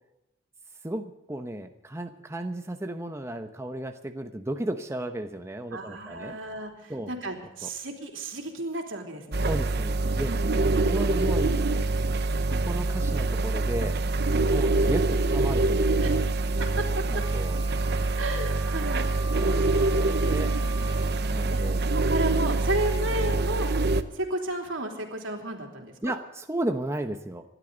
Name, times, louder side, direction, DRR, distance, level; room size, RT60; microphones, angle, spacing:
voice 1, 0.8-6.4 6.9-7.1 7.6-7.7 9.5-10.3 10.8-11.6 12.6-14.0 14.5-16.3 17.1-17.6 19.3-20.5 21.2-21.8 26.0-27.4, right 1 dB, 15° right, 6 dB, 0.9 m, -34 dB
voice 2, 5.7-9.5 10.2-11.0 14.3-14.6 16.0-16.3 16.6-17.2 18.2-19.0 20.5-20.9 21.1-21.6 21.9-23.7 24.1-26.1, right 1 dB, 80° right, 2 dB, 3.3 m, -33 dB
sound 1, 9.3-24.0, right 2 dB, 60° right, 0.9 m, -25 dB
Wind instrument woodwind instrument, 17.2-21.3, right 2 dB, 30° right, 2.0 m, -43 dB
27.0 x 12.0 x 4.0 m, 0.91 s
head